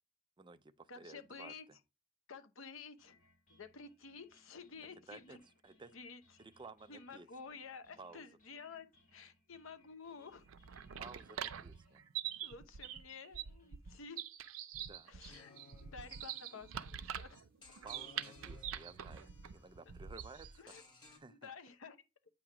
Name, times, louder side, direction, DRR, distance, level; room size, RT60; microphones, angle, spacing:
voice 1, 0.4-1.8 5.1-5.4 5.6-5.9 6.4-7.3 8.0-8.3 11.0-12.0 14.8-15.1 17.8-19.2 19.5-20.6 21.1-21.5, right 3 dB, 25° right, 0.4 m, -54 dB
voice 2, 0.9-1.7 2.3-3.2 3.5-5.4 5.9-6.2 6.9-8.9 9.1-10.4 12.4-14.2 15.1-17.4 20.6-20.8 21.3-22.0, left 5 dB, 75° left, 0.8 m, -51 dB
sound 1, 3.0-14.0, left 1 dB, 45° left, 2.1 m, -70 dB
sound 2, 10.4-20.6, right 9 dB, 85° right, 0.5 m, -45 dB
sound 3, 15.3-21.2, left 3 dB, 25° left, 2.3 m, -61 dB
8.6 x 3.0 x 5.8 m
head